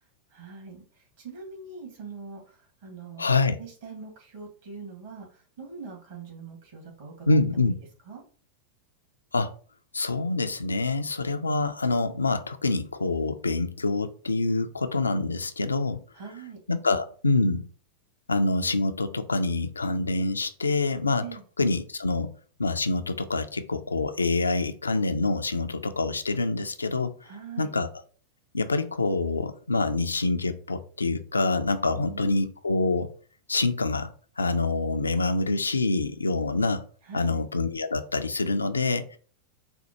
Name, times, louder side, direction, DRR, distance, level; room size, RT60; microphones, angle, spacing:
voice 1, 0.3-0.8 1.2-2.5 2.8-3.2 3.6-5.3 5.6-7.7 8.1-8.2 16.1-16.6 21.2-21.4 27.2-27.7 31.9-32.5 37.0-37.4, right 5 dB, 55° right, 0 dB, 1.6 m, -42 dB
voice 2, 3.2-3.6 7.3-7.8 9.3-9.5 9.9-16.0 16.7-17.7 18.3-21.3 21.6-22.3 22.6-27.1 27.6-27.9 28.5-33.1 33.5-34.1 34.4-36.9 37.1-39.2, left 3 dB, 75° left, 10 dB, 0.3 m, -26 dB
4.2 x 2.2 x 2.9 m, 0.42 s
figure-of-eight pair, 90°, 0 cm